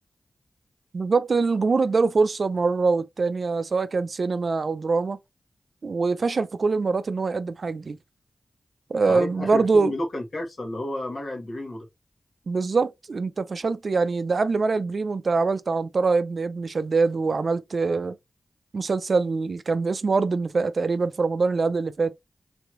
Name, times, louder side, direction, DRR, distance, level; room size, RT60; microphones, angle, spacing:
voice 1, 0.9-5.2 5.8-8.0 8.9-9.9 12.5-18.2 18.7-22.2, right 4 dB, 65° right, 0.4 m, -24 dB
voice 2, 9.1-11.9, left 1 dB, 65° left, 1.6 m, -31 dB
3.4 x 3.0 x 2.9 m
cardioid pair, 50°, 0 cm